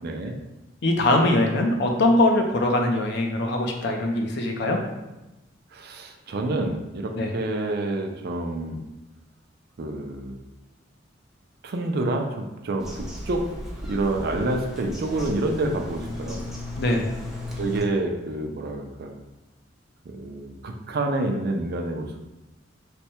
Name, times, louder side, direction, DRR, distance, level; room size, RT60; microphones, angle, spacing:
voice 1, 0.0-0.4 5.7-8.8 9.8-10.4 11.6-13.5 13.8-16.4 17.6-19.2 20.1-22.1, right 2 dB, 55° right, 3 dB, 0.4 m, -28 dB
voice 2, 0.8-4.8 7.1-7.3 16.8-17.1, left 1 dB, 65° left, 3 dB, 0.5 m, -22 dB
Bird vocalization bird call bird song, 12.8-17.8, left 1 dB, ahead, 0.6 m, -35 dB
3.3 x 2.1 x 4.3 m, 1.0 s
head